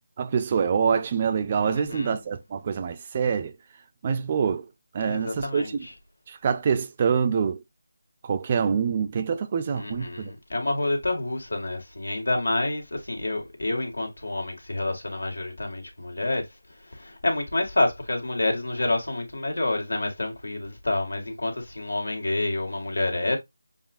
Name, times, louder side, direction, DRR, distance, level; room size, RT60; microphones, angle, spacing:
voice 1, 0.2-3.5 4.0-4.7 4.9-5.9 6.3-7.6 8.2-10.3, right 6 dB, 30° right, 0.4 m, -25 dB
voice 2, 1.7-2.1 5.0-5.9 9.7-16.4 16.9-23.4, left 2 dB, 80° left, 1.9 m, -28 dB
7.2 x 2.5 x 2.5 m
figure-of-eight pair, 165°, 0 cm